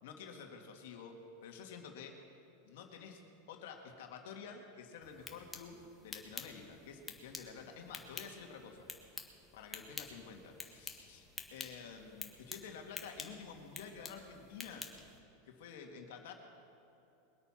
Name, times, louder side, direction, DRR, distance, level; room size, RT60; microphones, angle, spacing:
voice 1, 0.0-2.2 2.6-3.2 3.5-8.9 9.1-9.2 9.5-14.9 15.5-16.3, left 6 dB, 70° left, 3 dB, 2.2 m, -50 dB
sound 1, 5.0-15.2, left 3 dB, 15° left, 1.7 m, -49 dB
22.5 x 8.5 x 5.9 m, 2.9 s
hypercardioid pair, 105°, 0 cm